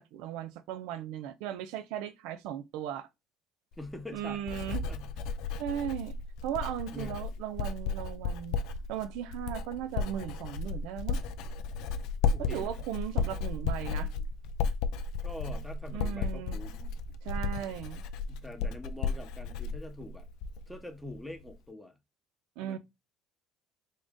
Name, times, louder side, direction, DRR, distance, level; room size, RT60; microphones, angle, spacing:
voice 1, 0.0-3.1 4.1-4.8 5.6-6.2 6.4-8.6 8.9-11.2 12.4-14.1 15.9-16.6 17.2-18.0 22.6-22.8, right 11 dB, 80° right, 0.4 m, -37 dB
Writing, 3.7-20.8 21.1-21.5, left 5 dB, 75° left, 0.4 m, -34 dB
voice 2, 3.8-5.1 6.9-7.2 12.2-12.8 15.2-16.9 18.3-20.3 20.7-22.0 22.6-22.8, left 1 dB, 5° left, 0.9 m, -44 dB
3.6 x 2.5 x 3.5 m
supercardioid pair, 100°, 0 cm